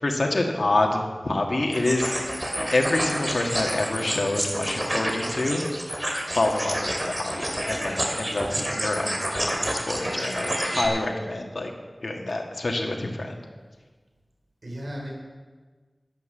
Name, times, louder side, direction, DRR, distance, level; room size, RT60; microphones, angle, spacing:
voice 1, 0.0-2.1 2.7-5.6 6.3-11.7 12.0-13.4, left 2 dB, 85° left, 2 dB, 1.6 m, -27 dB
sound 1, 1.7-10.9, equal, 25° right, 2.4 m, -29 dB
voice 2, 8.3-8.6 14.6-15.1, equal, 80° right, -1 dB, 3.7 m, -36 dB
12.0 x 9.5 x 7.2 m, 1.4 s
wide cardioid pair, 55°, 0 cm